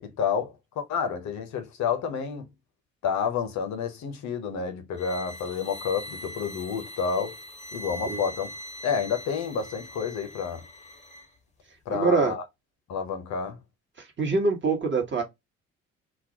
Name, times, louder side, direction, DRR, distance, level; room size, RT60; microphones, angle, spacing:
voice 1, 0.0-2.5 3.0-7.4 7.7-8.5 8.8-10.6 11.9-12.4 12.9-13.6, left 6 dB, 55° left, 0.7 m, -29 dB
sound 1, 4.9-11.3, equal, 20° left, 0.7 m, -41 dB
voice 2, 11.9-12.4 14.2-15.2, right 4 dB, 35° right, 1.0 m, -24 dB
2.3 x 2.1 x 2.7 m
hypercardioid pair, 45°, 35 cm